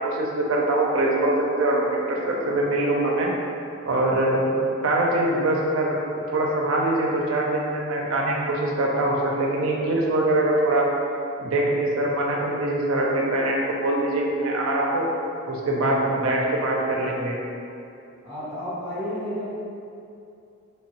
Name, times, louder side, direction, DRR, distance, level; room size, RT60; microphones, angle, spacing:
voice 1, 0.0-3.3 3.8-4.6 4.8-6.0 6.3-10.9 11.4-15.1 15.5-17.4, right 1 dB, 80° right, -2 dB, 0.5 m, -23 dB
voice 2, 18.2-19.5, equal, 30° right, -13 dB, 0.8 m, -31 dB
3.1 x 2.2 x 2.9 m, 2.6 s
head